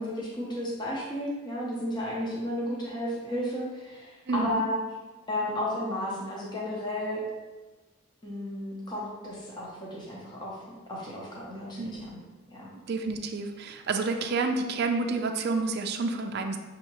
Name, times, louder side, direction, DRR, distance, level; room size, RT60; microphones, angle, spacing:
voice 1, 0.0-4.8 5.3-7.2 8.2-10.6 10.9-12.2 12.5-12.7, left 1 dB, 20° left, -5 dB, 0.7 m, -33 dB
voice 2, 4.3-4.6 11.8-12.1 12.7-16.6, right 3 dB, 50° right, 5 dB, 0.4 m, -29 dB
6.3 x 2.8 x 2.9 m, 1.2 s
head